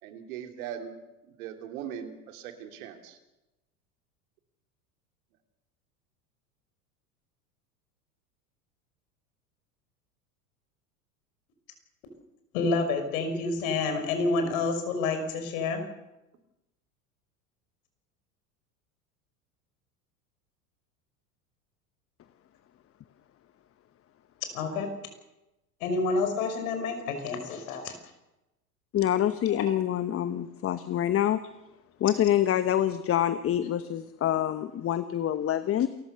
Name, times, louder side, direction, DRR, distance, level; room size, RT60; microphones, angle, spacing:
voice 1, 0.0-1.0 1.2-3.2, right 9 dB, 65° right, 6 dB, 3.1 m, -40 dB
voice 2, 12.5-15.8 24.5-24.9 25.8-28.0 29.5-29.6, left 3 dB, 65° left, 7 dB, 5.8 m, -28 dB
voice 3, 28.9-31.4 32.0-35.9, left 11 dB, 30° left, 13 dB, 1.0 m, -26 dB
28.0 x 14.5 x 6.9 m, 0.97 s
hypercardioid pair, 85°, 45 cm